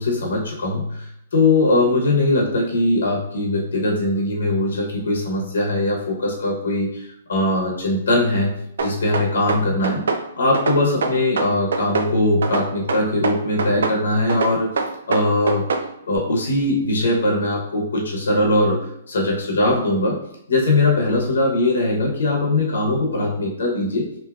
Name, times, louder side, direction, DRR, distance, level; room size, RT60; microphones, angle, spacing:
voice 1, 0.0-10.1 10.4-14.7 15.1-15.6 16.1-20.2 20.5-24.1, left 2 dB, 90° left, -1 dB, 0.8 m, -21 dB
sound 1, 8.8-10.2 10.5-12.1 12.4-14.0 14.3-15.9, right 4 dB, 80° right, 0.4 m, -23 dB
3.4 x 2.6 x 2.3 m, 0.75 s
hypercardioid pair, 165°, 0 cm